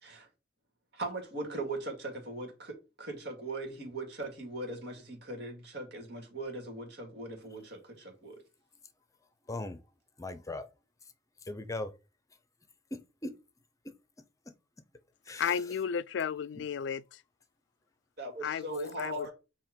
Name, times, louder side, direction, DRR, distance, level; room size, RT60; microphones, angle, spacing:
voice 1, 0.9-8.4 18.2-19.3, right 2 dB, 60° right, 2.2 m, -39 dB
voice 2, 9.5-9.8 10.2-10.7 11.5-11.9 12.9-13.4 13.8-13.9 15.3-15.5 16.6-16.7, left 2 dB, 20° left, 0.7 m, -38 dB
voice 3, 15.4-17.2 18.4-19.3, left 7 dB, 65° left, 0.3 m, -33 dB
7.7 x 3.0 x 5.2 m
head